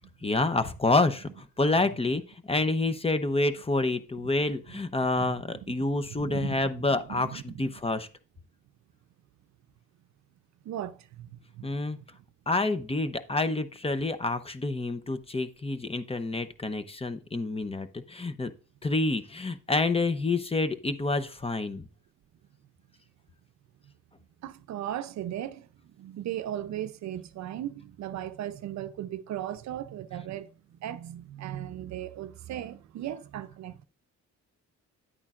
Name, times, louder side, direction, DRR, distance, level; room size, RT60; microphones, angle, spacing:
voice 1, 0.2-8.1 11.6-12.0 12.5-18.5 18.8-21.9, left 2 dB, 20° left, 0.8 m, -28 dB
voice 2, 5.1-5.7 6.1-7.5 10.6-11.9 24.4-33.8, right 11 dB, 65° right, 0.6 m, -37 dB
10.5 x 8.8 x 2.5 m
cardioid pair, 90°, 30 cm